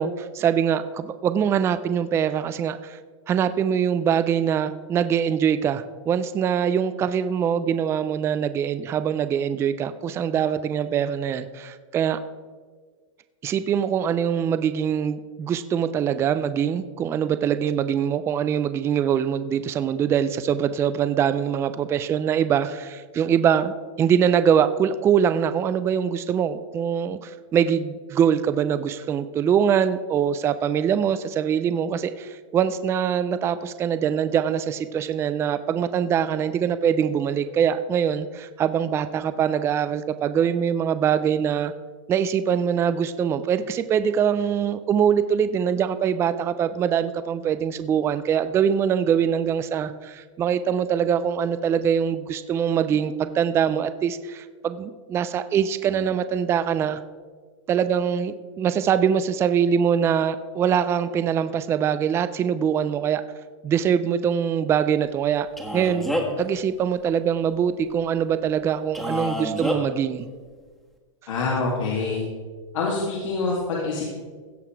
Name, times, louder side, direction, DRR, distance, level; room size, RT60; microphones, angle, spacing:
voice 1, 0.0-3.0 3.3-12.2 13.4-41.7 42.1-57.0 57.7-63.2 63.6-65.5 65.7-66.1 66.4-70.3, right 8 dB, 15° right, 12 dB, 0.4 m, -23 dB
Male speech man speaking, 65.6-66.5 68.9-69.8, equal, ahead, 1.4 m, -27 dB
voice 2, 71.3-72.2 72.7-74.0, left 3 dB, 80° left, -4 dB, 2.5 m, -25 dB
16.5 x 5.8 x 4.6 m, 1.5 s
hypercardioid pair, 140°, 16 cm